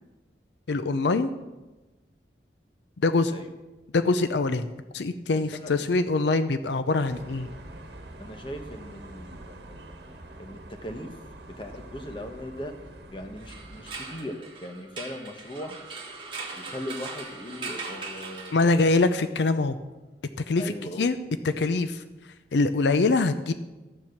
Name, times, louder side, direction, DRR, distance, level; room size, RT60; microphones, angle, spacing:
voice 1, 0.7-1.3 3.0-3.3 3.9-7.5 18.5-19.8 20.5-20.7 21.0-21.2 21.4-22.0 22.5-23.5, left 3 dB, 80° left, 11 dB, 0.5 m, -24 dB
voice 2, 5.3-5.7 8.2-9.9 10.4-11.2 11.5-12.7 13.1-15.8 16.5-18.5 20.6-21.1, left 1 dB, 30° left, 5 dB, 1.1 m, -39 dB
sound 1, 7.1-14.0, right 1 dB, 70° right, 1.3 m, -45 dB
sound 2, 13.4-19.1, right 4 dB, 30° right, 1.5 m, -40 dB
13.0 x 7.3 x 6.4 m, 1.1 s
head